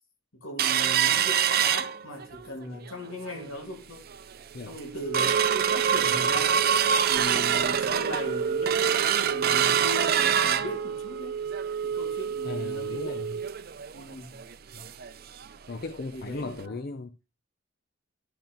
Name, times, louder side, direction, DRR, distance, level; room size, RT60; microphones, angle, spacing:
voice 1, 0.3-4.1 4.6-6.7 7.1-11.4 11.8-13.2 13.9-14.4 16.1-16.8, left 1 dB, 90° left, 2.3 m, -39 dB
sound 1, 0.6-2.5 2.9-3.0 3.3-3.6 4.1-4.2 4.6-15.1 15.4-15.5 15.9-16.1 16.6-16.7, right 8 dB, 50° right, 0.5 m, -25 dB
voice 2, 12.4-13.4 14.7-14.9 15.7-17.1, left 3 dB, 50° left, 0.6 m, -37 dB
12.0 x 3.9 x 4.4 m
head